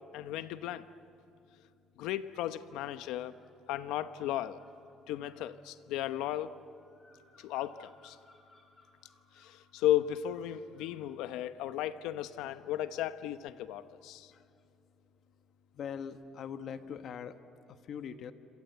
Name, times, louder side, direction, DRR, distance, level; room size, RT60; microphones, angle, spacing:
voice 1, 0.1-0.8 2.0-3.4 3.7-4.6 5.1-6.6 7.4-8.2 9.4-14.3, left 12 dB, 85° left, 12 dB, 0.9 m, -35 dB
sound 1, 2.9-3.6 4.6-11.1, left 2 dB, 25° left, 7.2 m, -65 dB
voice 2, 15.7-17.4 17.7-18.3, left 7 dB, 55° left, 9 dB, 1.4 m, -42 dB
27.0 x 27.0 x 8.1 m, 2.7 s
cardioid pair, 120°, 0 cm